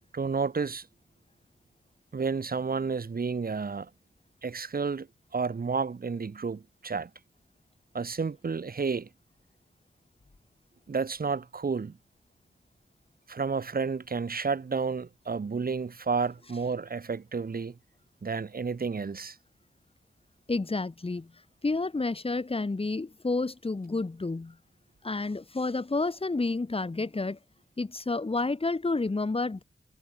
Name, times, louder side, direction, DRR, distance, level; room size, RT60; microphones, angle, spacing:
voice 1, 0.1-0.9 2.1-3.9 4.4-5.1 5.3-7.1 7.9-9.1 10.9-12.0 13.3-17.7 18.2-19.4, right 5 dB, 60° right, 4.7 m, -31 dB
voice 2, 20.5-21.3 21.6-24.6 25.0-27.4 27.8-29.6, left 3 dB, 35° left, 3.5 m, -30 dB
wide cardioid pair, 100°, 17 cm